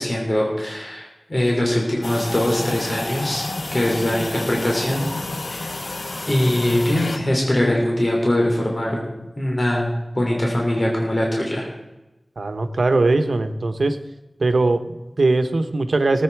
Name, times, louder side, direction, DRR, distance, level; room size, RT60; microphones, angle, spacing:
voice 1, 0.0-3.4 3.7-5.1 5.5-5.7 6.2-9.1 9.4-11.7, left 1 dB, 40° left, -1 dB, 3.4 m, -22 dB
sound 1, 2.0-7.2, left 2 dB, 70° left, 1.1 m, -30 dB
voice 2, 12.4-14.0 14.4-16.2, right 2 dB, 85° right, 9 dB, 1.1 m, -20 dB
19.0 x 8.7 x 4.7 m, 1.0 s
wide cardioid pair, 55°, 0 cm